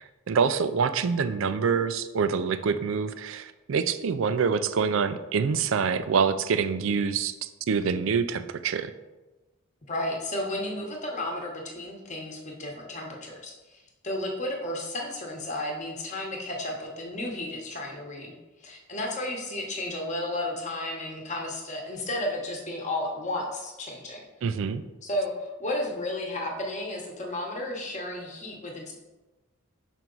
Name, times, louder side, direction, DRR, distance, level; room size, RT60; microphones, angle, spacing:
voice 1, 0.0-8.9 24.4-24.8, right 6 dB, 60° right, 12 dB, 0.3 m, -26 dB
voice 2, 9.9-18.3 18.6-24.2 25.0-28.9, left 1 dB, 35° left, 0 dB, 1.0 m, -33 dB
5.7 x 4.5 x 3.9 m, 1.1 s
head